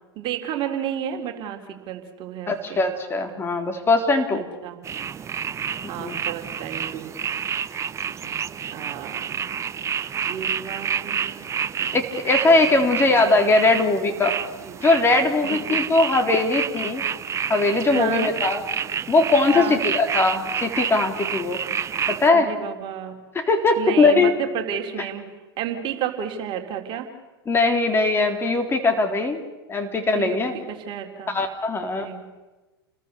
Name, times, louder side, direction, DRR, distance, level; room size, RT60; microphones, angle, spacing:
voice 1, 0.2-2.8 4.6-4.8 5.9-7.1 8.0-8.4 8.7-9.4 10.2-12.2 12.9-13.1 14.6-14.8 15.4-16.0 17.9-18.3 19.5-19.8 22.3-23.2 23.8-25.2 25.6-27.1 30.1-30.4 30.7-31.4 31.8-32.2, right 9 dB, 40° right, 4 dB, 3.7 m, -32 dB
voice 2, 2.5-4.5 6.0-6.2 11.9-14.4 14.8-17.0 17.5-18.6 19.1-21.6 22.1-22.5 23.4-24.3 27.5-29.4 29.7-30.6 31.3-32.1, left 3 dB, 20° left, 5 dB, 3.7 m, -20 dB
sound 1, 4.8-22.3, right 7 dB, 20° right, 1.0 m, -29 dB
29.5 x 21.5 x 6.9 m, 1.1 s
figure-of-eight pair, 95°, 13 cm